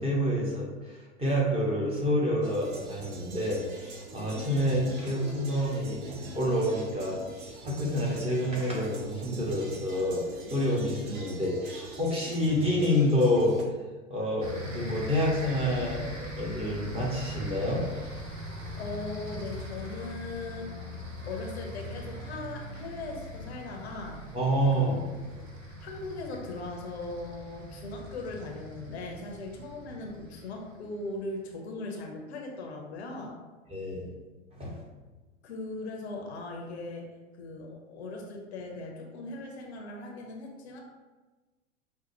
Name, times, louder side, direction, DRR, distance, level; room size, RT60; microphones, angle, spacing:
voice 1, 0.0-6.1 6.3-10.2 10.5-13.5 14.1-17.8 24.3-24.9 33.7-34.1 34.5-34.8, equal, 15° right, -5 dB, 1.0 m, -28 dB
sound 1, 2.4-13.6, right 2 dB, 40° right, 0.7 m, -43 dB
sound 2, 14.4-31.2, equal, 90° right, 0.8 m, -41 dB
voice 2, 18.8-20.7 21.2-24.2 24.8-25.0 25.4-25.5 25.8-33.4 35.4-37.1 37.4-40.8, left 2 dB, 55° left, 1 dB, 0.7 m, -39 dB
5.2 x 2.1 x 2.9 m, 1.2 s
figure-of-eight pair, 90°, 38 cm